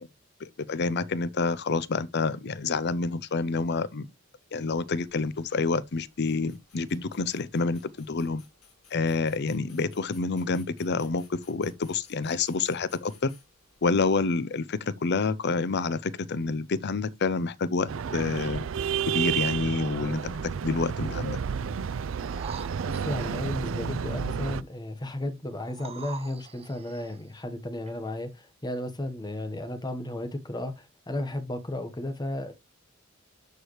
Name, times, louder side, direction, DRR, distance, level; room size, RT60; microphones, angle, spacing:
voice 1, 0.4-4.1 4.5-8.4 8.9-13.3 13.8-18.6 19.1-21.4, left 4 dB, 55° left, 0.6 m, -28 dB
sound 1, 4.8-14.0, left 6 dB, 85° left, 4.2 m, -59 dB
sound 2, 17.9-24.6, right 7 dB, 70° right, 0.4 m, -31 dB
sound 3, 22.2-23.5 25.6-27.2 27.9-28.0, right 5 dB, 30° right, 0.7 m, -44 dB
voice 2, 22.8-32.5, left 1 dB, 20° left, 1.2 m, -34 dB
13.0 x 4.8 x 3.1 m
head